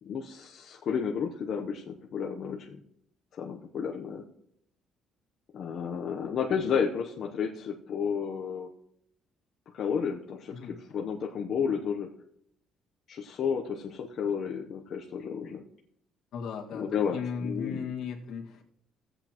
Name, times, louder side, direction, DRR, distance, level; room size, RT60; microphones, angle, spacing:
voice 1, 0.0-2.8 3.3-4.2 5.5-8.7 9.7-12.1 13.1-15.6 16.7-17.9, left 7 dB, 45° left, 0 dB, 0.8 m, -32 dB
voice 2, 16.3-18.6, left 6 dB, 65° left, 0 dB, 1.8 m, -36 dB
17.0 x 8.0 x 3.0 m, 0.72 s
cardioid pair, 160°, 0 cm